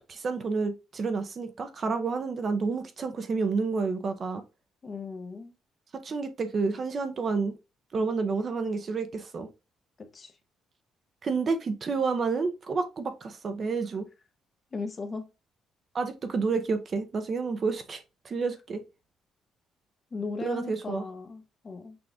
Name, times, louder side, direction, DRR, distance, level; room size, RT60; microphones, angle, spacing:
voice 1, 0.1-4.4 6.0-7.5 7.9-9.5 11.2-14.1 15.9-18.8 20.4-21.0, right 4 dB, 35° right, 0.6 m, -29 dB
voice 2, 4.8-5.5 10.1-10.3 14.7-15.3 20.1-22.0, left 4 dB, 30° left, 0.8 m, -37 dB
6.0 x 2.4 x 3.3 m
cardioid pair, 155°, 0 cm